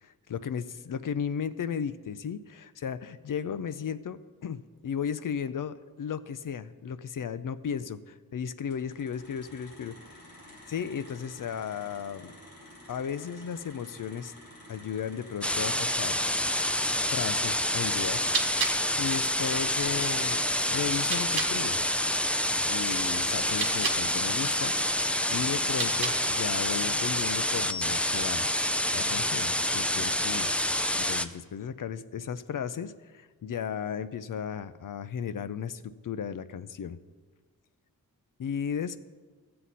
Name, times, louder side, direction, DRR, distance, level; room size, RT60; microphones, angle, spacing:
voice 1, 0.0-9.9 10.7-12.3 12.9-14.3 14.7-16.2 17.1-18.2 18.5-20.4 20.7-21.8 22.7-25.0 25.3-28.5 28.9-30.5 30.9-37.0 38.4-39.0, left 7 dB, 65° left, 14 dB, 0.5 m, -35 dB
sound 1, 8.7-26.6, equal, 85° left, 3.2 m, -50 dB
sound 2, 15.4-31.3, left 1 dB, 5° left, 0.3 m, -28 dB
sound 3, 18.2-21.6 23.4-24.1 25.6-26.4, right 5 dB, 85° right, 1.0 m, -35 dB
14.0 x 7.7 x 4.1 m, 1.4 s
wide cardioid pair, 105°, 36 cm